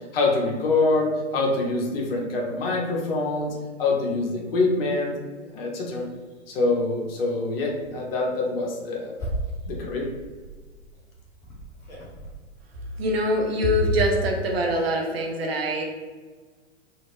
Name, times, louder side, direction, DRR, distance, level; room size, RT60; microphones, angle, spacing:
voice 1, 0.1-3.5 3.8-5.1 5.5-6.0 6.5-9.1 9.7-10.1, left 3 dB, 50° left, -1 dB, 0.8 m, -25 dB
sound 1, 5.5-5.6 6.0-6.4 7.2-7.4 7.7-7.9 8.5-12.3, right 1 dB, 10° left, 0.4 m, -37 dB
voice 2, 13.0-15.8, equal, 55° right, 1 dB, 0.6 m, -23 dB
2.7 x 2.5 x 3.0 m, 1.4 s
figure-of-eight pair, 105°, 37 cm